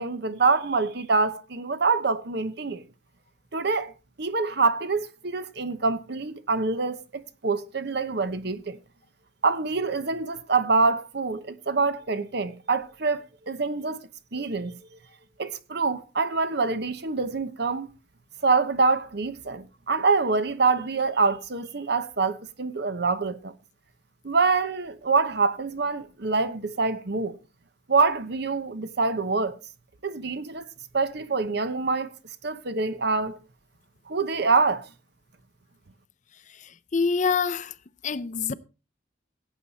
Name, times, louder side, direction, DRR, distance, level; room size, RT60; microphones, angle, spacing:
voice 1, 0.0-2.8 3.5-3.9 4.2-8.8 9.4-14.0 14.3-14.8 15.4-17.9 18.4-23.5 24.2-27.4 27.9-29.5 30.0-30.6 30.9-32.1 32.4-33.4 34.1-34.9, right 4 dB, 60° right, 1.0 m, -25 dB
voice 2, 36.5-37.7 38.0-38.5, left 5 dB, 40° left, 0.5 m, -26 dB
17.0 x 8.3 x 4.1 m
head